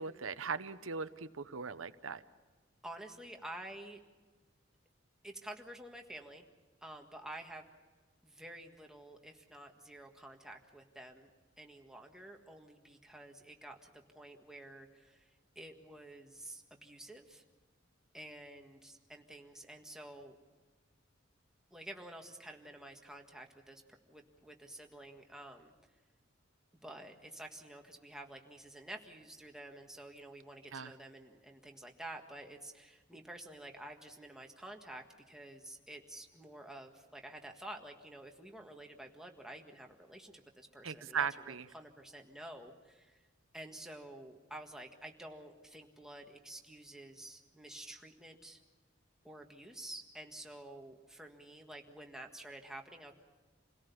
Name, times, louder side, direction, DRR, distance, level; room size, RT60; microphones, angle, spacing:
voice 1, 0.0-2.2 30.7-30.9 40.8-41.6, right 6 dB, 90° right, 12 dB, 0.8 m, -38 dB
voice 2, 2.8-4.0 5.2-6.5 6.8-7.7 8.2-11.3 11.6-17.4 18.1-20.4 21.7-25.7 26.8-43.2 43.5-48.6 49.2-53.1, right 1 dB, 5° right, 2 dB, 1.7 m, -50 dB
27.5 x 17.5 x 7.1 m, 1.3 s
head